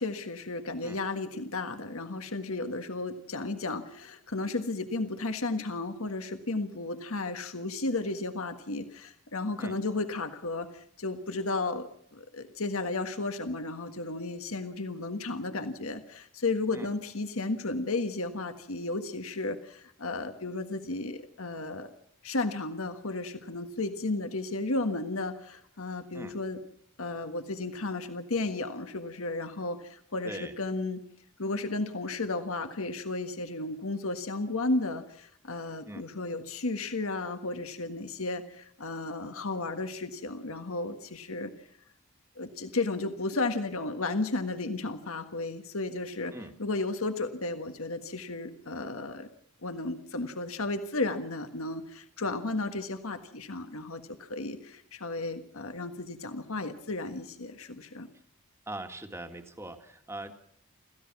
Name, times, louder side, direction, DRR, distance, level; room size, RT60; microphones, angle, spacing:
voice 1, 0.0-21.9 22.2-26.6 27.0-31.0 31.4-41.5 42.3-46.3 46.6-49.3 49.6-58.1, left 2 dB, 70° left, 8 dB, 1.6 m, -33 dB
voice 2, 30.2-30.5 35.9-36.1 46.3-46.5 58.7-60.3, right 1 dB, 10° right, 6 dB, 1.9 m, -41 dB
27.0 x 15.5 x 6.1 m, 0.65 s
head